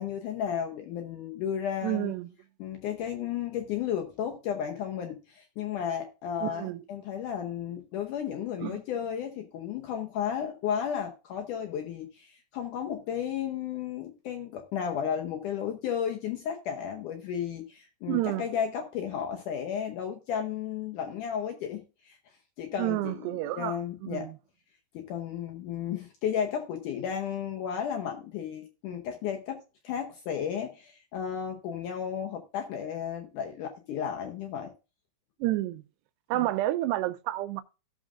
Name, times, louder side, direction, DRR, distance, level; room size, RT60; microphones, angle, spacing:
voice 1, 0.0-2.1 2.6-22.2 22.6-24.3 24.9-34.7 36.3-36.5, left 8 dB, 80° left, 1.8 m, -33 dB
voice 2, 1.8-2.3 6.4-6.8 8.6-8.8 18.1-18.5 22.8-24.4 35.4-35.8 36.3-37.6, right 16 dB, 90° right, 2.7 m, -30 dB
16.5 x 6.4 x 2.4 m
omnidirectional pair, 4.7 m